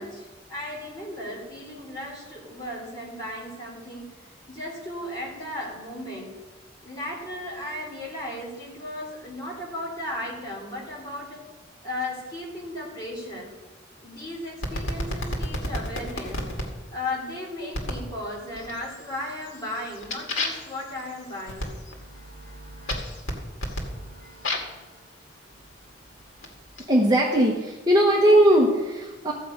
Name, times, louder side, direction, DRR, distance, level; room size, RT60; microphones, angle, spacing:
voice 1, 0.0-4.2 4.5-6.3 6.8-11.4 11.8-13.5 14.0-16.4 16.9-21.7, left 1 dB, 20° left, -5 dB, 3.4 m, -35 dB
sound 1, 14.6-16.7 17.7-18.1 18.5-19.0 19.4-24.8 25.6-26.8, left 1 dB, 90° left, 2.1 m, -32 dB
voice 2, 26.9-29.3, right 1 dB, 20° right, -2 dB, 1.1 m, -19 dB
14.5 x 7.7 x 5.3 m, 1.2 s
head